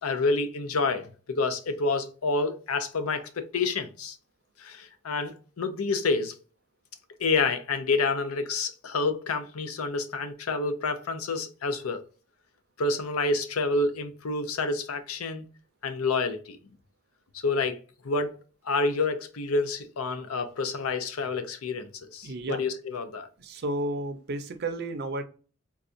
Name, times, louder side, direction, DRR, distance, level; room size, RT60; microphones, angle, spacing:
voice 1, 0.0-4.2 4.6-6.3 7.2-12.0 12.8-15.5 15.8-16.6 17.4-17.8 18.0-18.3 18.6-23.3, left 3 dB, 85° left, 0.6 m, -28 dB
voice 2, 22.2-22.6 23.4-25.2, right 2 dB, 50° right, 0.5 m, -32 dB
4.0 x 2.3 x 2.5 m
head